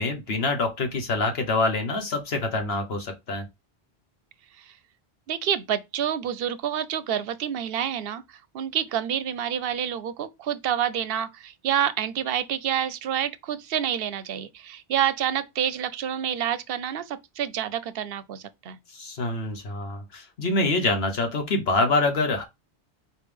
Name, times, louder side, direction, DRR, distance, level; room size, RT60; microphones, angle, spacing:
voice 1, 0.0-3.4 18.9-22.4, left 2 dB, 75° left, 1.4 m, -25 dB
voice 2, 5.3-18.8, right 9 dB, 70° right, 0.7 m, -28 dB
4.6 x 3.3 x 3.4 m
omnidirectional pair, 1.1 m